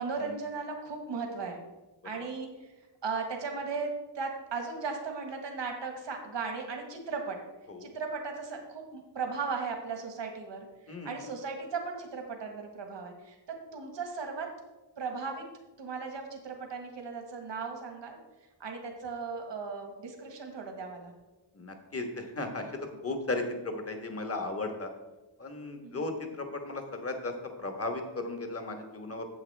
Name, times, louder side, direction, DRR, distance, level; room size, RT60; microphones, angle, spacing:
voice 1, 0.0-1.6 2.0-2.5 3.0-7.4 7.8-13.4 13.7-14.5 15.0-15.4 15.8-18.2 18.6-21.1 25.8-26.1, right 4 dB, 75° right, 3 dB, 1.6 m, -37 dB
voice 2, 10.9-11.2 21.5-24.9 25.4-27.3 27.6-29.2, left 2 dB, 30° left, 5 dB, 1.3 m, -36 dB
9.5 x 7.3 x 3.4 m, 1.1 s
cardioid pair, 75°, 44 cm